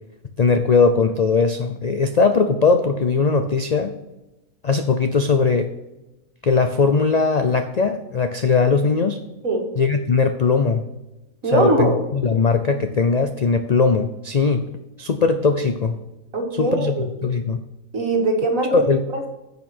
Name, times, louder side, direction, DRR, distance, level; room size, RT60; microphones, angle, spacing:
voice 1, 0.4-3.9 4.6-5.7 6.4-9.2 9.8-10.9 11.4-14.6 15.0-16.0 16.6-17.0 17.2-17.6 18.7-19.0, left 4 dB, 65° left, 7 dB, 0.4 m, -19 dB
voice 2, 11.4-12.0 16.3-17.1 17.9-18.7 19.1-19.3, right 2 dB, 65° right, 2 dB, 2.2 m, -21 dB
10.0 x 6.7 x 4.3 m, 1.0 s
omnidirectional pair, 1.5 m